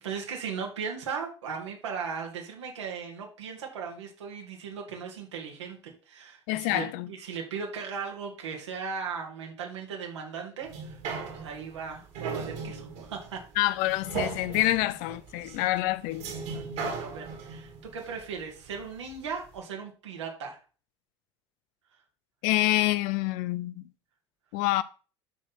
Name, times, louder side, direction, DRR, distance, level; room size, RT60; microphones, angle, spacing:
voice 1, 0.0-11.0 11.3-13.4 15.4-15.6 16.5-20.6, right 6 dB, 80° right, 2.3 m, -37 dB
voice 2, 6.5-7.1 13.6-16.3 22.4-23.8 24.5-24.8, left 17 dB, 60° left, 0.6 m, -27 dB
sound 1, 10.6-19.1 19.6-19.7, right 5 dB, 65° right, 2.8 m, -38 dB
11.5 x 4.3 x 4.1 m
hypercardioid pair, 70°, 15 cm